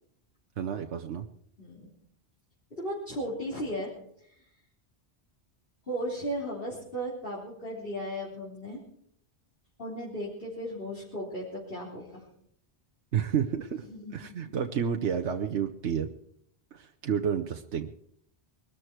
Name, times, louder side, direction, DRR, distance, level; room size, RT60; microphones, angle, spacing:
voice 1, 0.6-1.3 13.1-13.8 14.1-16.1 16.7-17.9, right 8 dB, 80° right, 4 dB, 1.2 m, -30 dB
voice 2, 2.8-3.9 4.3-4.4 5.8-8.8 9.8-12.2 13.9-14.1 14.4-14.5, equal, 55° left, -7 dB, 4.0 m, -36 dB
22.0 x 13.0 x 4.6 m, 0.70 s
omnidirectional pair, 1.2 m